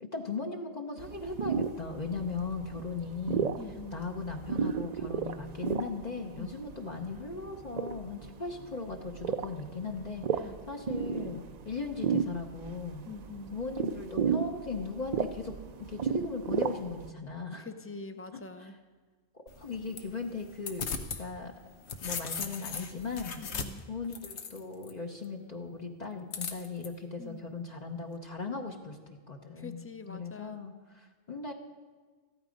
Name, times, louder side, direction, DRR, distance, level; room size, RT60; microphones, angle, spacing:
voice 1, 0.0-3.5 3.9-13.1 13.5-17.7 18.3-18.7 19.3-20.9 21.2-21.5 22.0-23.5 23.9-31.5, left 4 dB, 40° left, 2 dB, 1.0 m, -38 dB
sound 1, 1.0-17.1, right 6 dB, 50° right, 0.5 m, -34 dB
voice 2, 3.6-4.0 6.4-6.5 10.4-10.6 13.1-13.6 17.6-18.8 23.4-23.9 27.2-27.4 28.6-29.0 29.5-30.6, left 4 dB, 15° left, 9 dB, 0.5 m, -45 dB
sound 2, 19.5-21.2 21.6-24.9 26.3-26.9, left 5 dB, 90° left, 1.2 m, -38 dB
14.5 x 12.0 x 5.2 m, 1.4 s
omnidirectional pair, 1.1 m